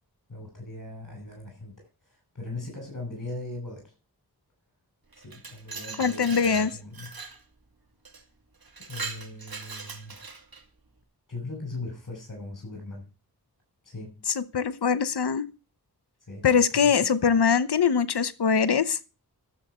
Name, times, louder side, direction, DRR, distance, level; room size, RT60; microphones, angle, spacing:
voice 1, 0.3-3.9 5.2-7.1 8.9-10.2 11.3-13.1 13.8-14.2 16.3-16.9 17.2-17.3, left 2 dB, 55° left, 6.5 m, -39 dB
Glass, 5.1-7.4 8.0-8.2 8.6-10.6, right 4 dB, 65° right, 2.5 m, -40 dB
voice 2, 6.0-6.7 14.3-15.5 16.4-19.0, left 6 dB, 85° left, 1.1 m, -23 dB
12.5 x 7.3 x 8.0 m
cardioid pair, 45°, 39 cm